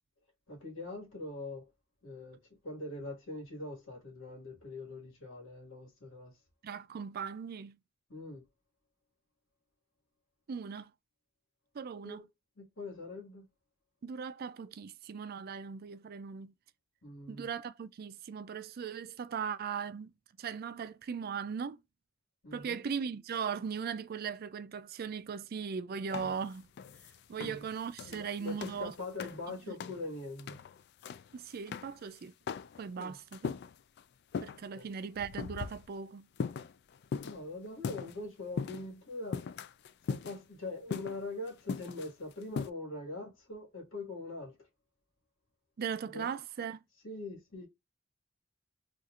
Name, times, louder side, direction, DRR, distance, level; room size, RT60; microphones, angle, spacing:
voice 1, 0.5-1.7 2.0-2.4 2.6-6.4 8.1-8.4 12.0-12.3 12.6-13.4 17.0-17.5 22.4-22.8 27.4-27.7 28.1-30.6 32.9-33.2 34.7-34.9 37.2-39.5 40.0-44.6 46.1-46.4 47.0-47.7, left 2 dB, 85° left, 1.7 m, -43 dB
voice 2, 6.6-7.8 10.5-10.9 11.7-12.2 14.0-16.5 17.3-20.1 20.4-21.8 22.5-26.7 27.3-28.9 29.7-29.8 31.3-32.3 32.8-33.5 34.4-36.3 45.8-46.8, right 6 dB, 50° right, 0.4 m, -38 dB
sound 1, 26.1-29.5 29.8-30.1 30.4-31.4 31.7-32.0 32.5-34.0 34.3-34.6 35.2-35.9 36.4-38.2 38.5-38.9 39.3-40.7 40.9-42.7, left 5 dB, 55° left, 0.3 m, -39 dB
4.2 x 2.5 x 2.4 m
head